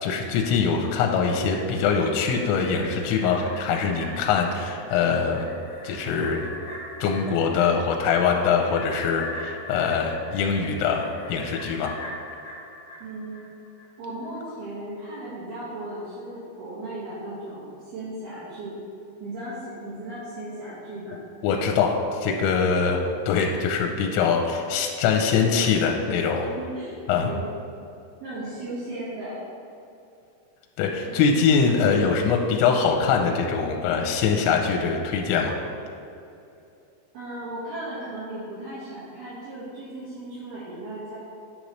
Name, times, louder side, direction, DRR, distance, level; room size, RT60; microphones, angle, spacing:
voice 1, 0.0-5.5 5.8-6.5 7.0-11.9 21.4-26.5 27.1-27.3 30.8-35.6, left 5 dB, 85° left, 2 dB, 2.9 m, -23 dB
sound 1, 1.7-13.9 14.2-14.3, left 1 dB, 60° left, 1.9 m, -42 dB
voice 2, 13.0-13.4 14.0-18.8 19.2-21.2 26.4-27.4 28.2-29.4 31.0-31.2 37.1-41.2, right 1 dB, 65° right, -11 dB, 3.1 m, -36 dB
10.0 x 5.2 x 3.1 m, 2.7 s
omnidirectional pair, 5.3 m